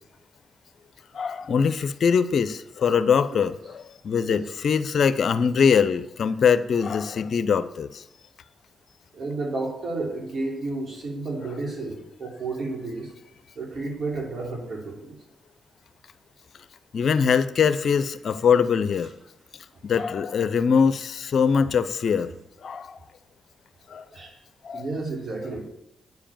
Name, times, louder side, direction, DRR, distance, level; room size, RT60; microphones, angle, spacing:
voice 1, 1.1-8.0 16.9-19.1 19.8-22.3 22.6-23.0 23.9-24.1 24.6-24.9, left 6 dB, 65° left, 14 dB, 0.5 m, -22 dB
voice 2, 9.1-13.1 13.5-15.2 24.1-24.3 24.7-25.7, right 3 dB, 60° right, -1 dB, 3.3 m, -31 dB
9.3 x 4.9 x 7.3 m, 0.89 s
supercardioid pair, 50°, 0 cm